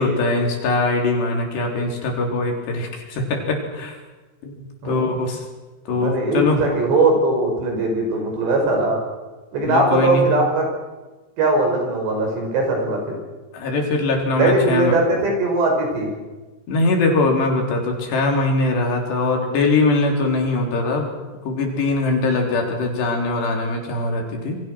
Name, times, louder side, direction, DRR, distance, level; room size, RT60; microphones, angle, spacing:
voice 1, 0.0-4.0 4.4-5.4 5.9-6.6 9.6-10.2 13.5-15.0 16.7-21.1 21.4-24.6, left 2 dB, 70° left, 1 dB, 5.7 m, -21 dB
voice 2, 4.8-5.2 5.9-9.0 9.5-10.7 11.4-13.2 14.4-16.1, right 2 dB, 70° right, 2 dB, 7.7 m, -20 dB
28.0 x 23.5 x 6.2 m, 1.2 s
omnidirectional pair, 5.1 m